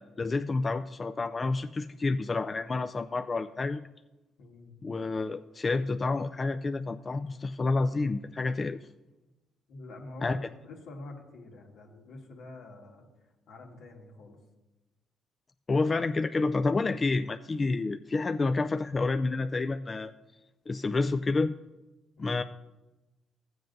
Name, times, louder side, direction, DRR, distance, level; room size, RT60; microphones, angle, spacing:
voice 1, 0.0-3.8 4.8-8.8 10.2-10.4 15.7-20.1 20.7-21.5 22.2-22.4, left 3 dB, 30° left, 8 dB, 0.3 m, -29 dB
voice 2, 4.4-4.7 9.7-14.4 22.2-22.4, left 2 dB, 80° left, 0 dB, 1.7 m, -46 dB
15.5 x 7.7 x 2.6 m, 1.1 s
cardioid pair, 90°, 0 cm